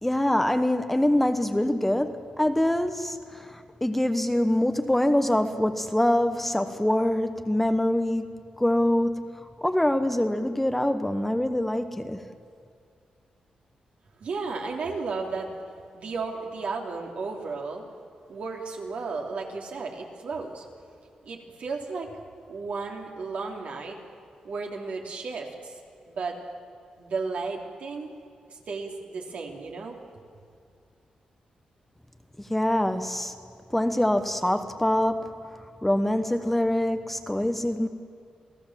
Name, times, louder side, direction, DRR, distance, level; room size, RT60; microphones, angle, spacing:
voice 1, 0.0-12.3 32.5-33.3 33.7-35.3 35.8-37.9, left 1 dB, 5° left, 8 dB, 1.0 m, -25 dB
voice 2, 14.2-15.5 15.9-17.9 18.3-20.6 21.2-22.1 22.5-24.0 24.4-25.8 26.1-26.4 27.0-28.1 28.5-30.0, right 4 dB, 70° right, 1 dB, 3.3 m, -34 dB
28.0 x 17.5 x 7.5 m, 2.4 s
cardioid pair, 110°, 2 cm